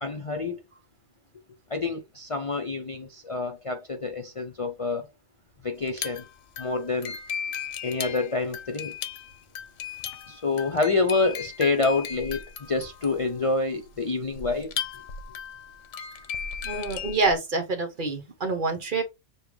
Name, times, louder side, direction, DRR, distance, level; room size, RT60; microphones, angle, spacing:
voice 1, 0.0-0.6 1.7-5.1 5.6-6.2 6.6-7.2 7.8-8.9 10.3-12.4 12.7-14.7, left 3 dB, 40° left, 0.5 m, -27 dB
sound 1, 5.8-17.4, left 7 dB, 80° left, 1.0 m, -36 dB
voice 2, 16.6-19.0, right 3 dB, 45° right, 1.0 m, -27 dB
6.8 x 2.3 x 3.2 m
omnidirectional pair, 1.2 m